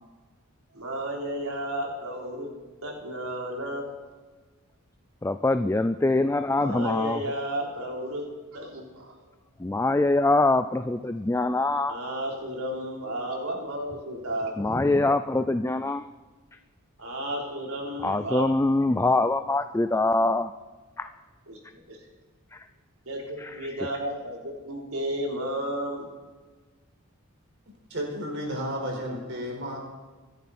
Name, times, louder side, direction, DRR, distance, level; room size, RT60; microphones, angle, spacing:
voice 1, 0.7-2.5 2.8-3.9 6.6-8.3 8.5-9.2 11.9-14.8 17.0-18.5 21.5-22.0 23.1-26.1, right 1 dB, 80° right, -1 dB, 3.8 m, -33 dB
voice 2, 5.2-7.2 9.6-11.9 14.6-16.0 18.0-20.5 21.0-21.1 22.5-22.7 23.4-23.5, left 2 dB, 10° left, 9 dB, 0.4 m, -24 dB
voice 3, 27.9-29.8, equal, 60° right, 0 dB, 4.6 m, -32 dB
25.5 x 10.5 x 4.3 m, 1.3 s
head